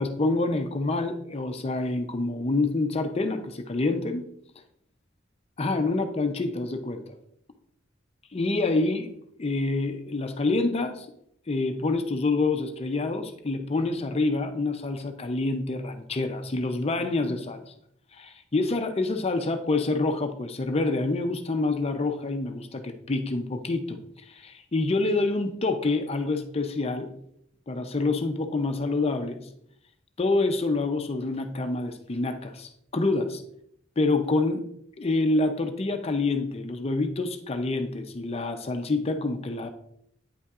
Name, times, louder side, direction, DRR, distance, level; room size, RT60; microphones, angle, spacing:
voice 1, 0.0-4.2 5.6-7.0 8.3-9.1 9.4-11.1 11.5-17.7 18.1-27.1 27.7-29.4 30.2-33.4 34.0-34.7 35.0-39.7, left 3 dB, 30° left, 7 dB, 0.5 m, -27 dB
8.9 x 5.6 x 2.4 m, 0.71 s
head